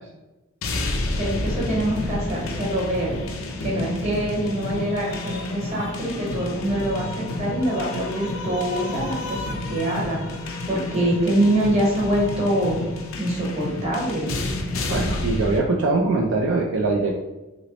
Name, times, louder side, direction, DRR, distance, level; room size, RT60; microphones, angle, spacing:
sound 1, 0.6-15.6, left 2 dB, 80° left, 0.5 m, -30 dB
voice 1, 1.2-3.2 3.6-10.2 10.7-12.8 13.2-14.3, right 1 dB, 30° right, -4 dB, 1.1 m, -24 dB
voice 2, 14.9-17.1, right 3 dB, 60° right, -1 dB, 0.4 m, -22 dB
3.0 x 2.9 x 2.9 m, 1.0 s
head